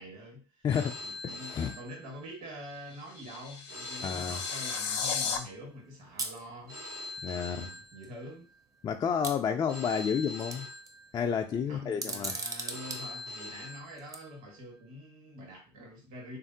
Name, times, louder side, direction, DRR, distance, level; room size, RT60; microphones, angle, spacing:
voice 1, 0.0-0.7 1.0-6.8 7.4-8.5 11.7-16.4, equal, 60° right, 1 dB, 1.5 m, -46 dB
Telephone, 0.7-2.5 3.7-5.5 6.7-8.5 9.7-11.5 12.7-14.5, left 2 dB, 90° right, 1.3 m, -44 dB
voice 2, 1.2-1.7 4.0-4.4 7.2-7.7 8.8-10.7 11.1-12.3, left 7 dB, 30° left, 4 dB, 0.3 m, -30 dB
sound 1, 2.7-5.4, left 6 dB, 80° left, 0.5 m, -35 dB
sound 2, 6.2-6.4 7.5-7.6 8.0-8.1 9.2-10.0 10.4-10.9 11.9-13.0 14.0-14.2, right 3 dB, 20° right, 0.6 m, -37 dB
3.4 x 2.5 x 2.7 m, 0.33 s
hypercardioid pair, 70°, 14 cm